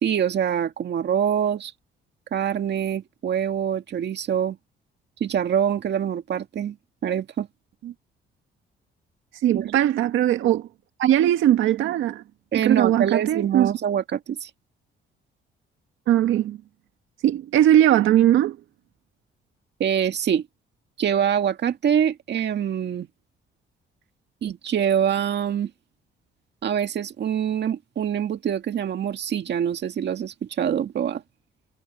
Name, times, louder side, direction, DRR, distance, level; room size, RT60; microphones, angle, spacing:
voice 1, 0.0-1.7 2.3-4.6 5.2-6.8 7.0-7.5 9.5-9.7 12.5-14.5 19.8-20.4 21.0-23.1 24.4-25.7 26.6-31.2, right 9 dB, 60° right, 2.0 m, -24 dB
voice 2, 9.4-10.7 11.0-12.2 12.6-13.7 16.1-16.6 17.2-18.6, right 12 dB, 85° right, 1.7 m, -19 dB
cardioid pair, 90°, 20 cm